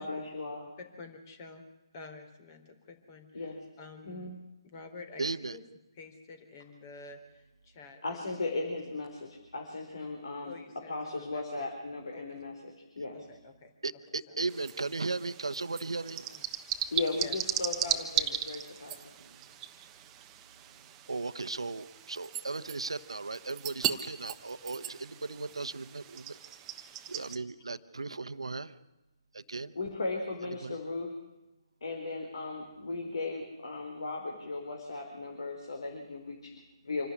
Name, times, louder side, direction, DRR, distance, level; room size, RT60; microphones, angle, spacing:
voice 1, 0.0-0.7 3.3-3.6 4.0-4.4 8.0-10.6 10.9-13.2 16.9-19.0 29.7-31.1 31.8-37.1, left 3 dB, 65° left, 2 dB, 4.1 m, -37 dB
voice 2, 1.0-1.6 1.9-4.3 4.6-5.6 5.9-8.0 10.4-11.7 12.1-12.4 13.1-13.7 14.3-14.4 16.3-16.5 17.2-17.4 17.9-18.4 26.8-27.2, left 3 dB, 35° left, 7 dB, 3.8 m, -50 dB
voice 3, 5.2-5.6 13.8-16.4 19.2-19.3 21.1-26.4 27.1-28.7 29.3-29.7 30.6-30.8, right 3 dB, 75° right, 12 dB, 1.2 m, -36 dB
sound 1, 14.5-27.4, right 10 dB, 15° right, 1.2 m, -37 dB
26.5 x 12.5 x 9.8 m, 1.0 s
figure-of-eight pair, 145°, 3 cm